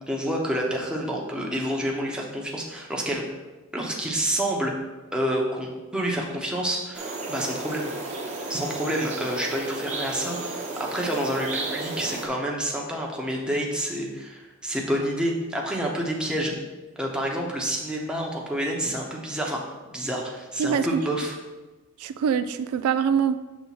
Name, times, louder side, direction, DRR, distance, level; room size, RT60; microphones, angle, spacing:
voice 1, 0.1-3.2 3.7-4.7 5.1-7.9 8.5-16.5 17.0-21.3, right 1 dB, 5° right, -2 dB, 0.9 m, -28 dB
sound 1, 6.9-12.3, right 3 dB, 30° right, 1.2 m, -33 dB
voice 2, 22.0-23.4, right 7 dB, 75° right, 12 dB, 0.3 m, -24 dB
7.0 x 3.5 x 5.9 m, 1.2 s
head